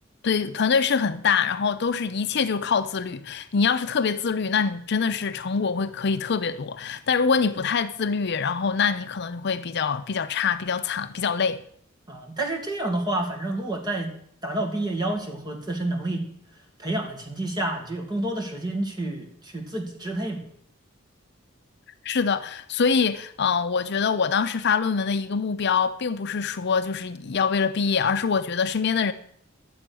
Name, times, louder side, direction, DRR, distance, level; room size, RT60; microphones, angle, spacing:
voice 1, 0.2-11.6 22.0-29.1, left 5 dB, 55° left, 0.6 m, -24 dB
voice 2, 12.1-14.1 14.4-16.2 16.8-20.4, right 1 dB, 20° right, 2.4 m, -29 dB
11.5 x 7.7 x 6.2 m
head